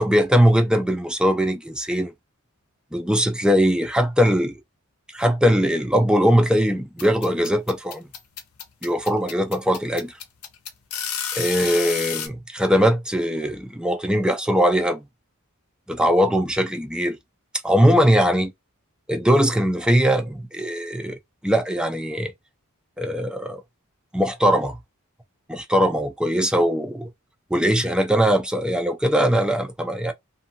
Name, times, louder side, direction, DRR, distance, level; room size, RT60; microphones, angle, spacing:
voice 1, 0.0-2.1 2.9-4.6 5.1-8.1 8.8-10.1 11.4-15.0 15.9-17.2 17.6-18.5 19.1-21.1 21.4-22.3 23.0-23.6 24.1-24.8 25.5-27.1 27.5-30.1, equal, 5° right, 0.5 m, -20 dB
sound 1, 7.0-12.3, left 8 dB, 90° left, 0.8 m, -30 dB
2.7 x 2.6 x 2.6 m
head